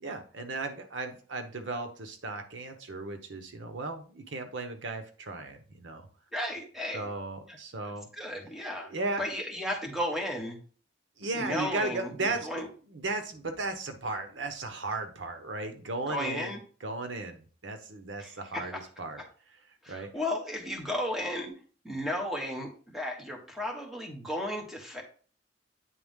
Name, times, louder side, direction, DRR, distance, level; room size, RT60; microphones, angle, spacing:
voice 1, 0.0-6.0 6.9-8.1 8.9-9.2 11.2-19.2 19.9-20.1, right 3 dB, 90° right, 7 dB, 0.9 m, -36 dB
voice 2, 6.3-7.1 7.8-8.9 9.2-10.6 11.3-12.7 16.1-16.6 18.2-18.8 19.8-21.5 21.8-25.0, left 1 dB, ahead, 1 dB, 1.4 m, -34 dB
8.9 x 3.5 x 3.6 m, 0.41 s
head